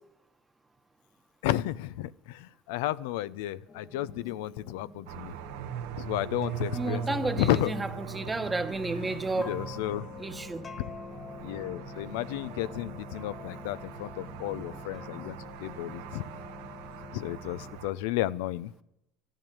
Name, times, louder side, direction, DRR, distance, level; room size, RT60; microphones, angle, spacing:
voice 1, 1.4-5.3 6.0-7.0 7.4-7.7 9.0-10.1 11.4-16.2 17.1-18.7, left 14 dB, 85° left, 0.5 m, -32 dB
sound 1, 3.7-17.8, left 3 dB, 25° left, 1.6 m, -46 dB
sound 2, 5.1-17.9, right 7 dB, 85° right, 1.2 m, -40 dB
voice 2, 6.7-9.5 10.2-10.6 14.5-14.7 15.1-15.2, right 2 dB, 15° right, 1.1 m, -32 dB
12.5 x 11.0 x 8.8 m
supercardioid pair, 115°, 0 cm